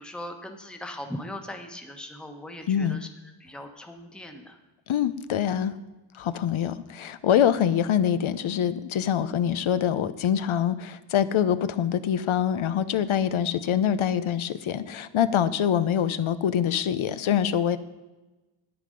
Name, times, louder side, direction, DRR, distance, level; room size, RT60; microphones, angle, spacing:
voice 1, 0.0-3.1 3.4-4.6, left 1 dB, ahead, 5 dB, 1.1 m, -39 dB
voice 2, 2.7-3.0 4.9-5.7 6.1-17.8, left 9 dB, 75° left, 14 dB, 0.8 m, -25 dB
10.0 x 9.5 x 5.2 m, 1.1 s
cardioid pair, 80°, 49 cm